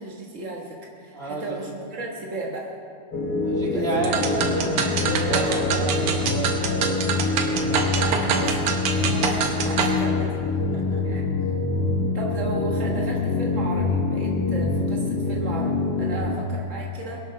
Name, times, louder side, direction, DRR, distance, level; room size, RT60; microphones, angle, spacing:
voice 1, 0.0-2.7 3.6-4.2 4.6-4.8 5.3-5.7 7.8-10.3 11.0-11.2 12.1-17.2, right 2 dB, 55° right, -2 dB, 0.8 m, -34 dB
voice 2, 1.1-1.6 3.4-8.2 10.4-11.2, right 2 dB, 20° right, -3 dB, 2.2 m, -32 dB
sound 1, 3.1-16.3, left 3 dB, 50° left, 1.3 m, -25 dB
sound 2, 4.0-10.0, right 6 dB, 80° right, 2.6 m, -26 dB
21.5 x 8.1 x 6.0 m, 2.4 s
omnidirectional pair, 3.4 m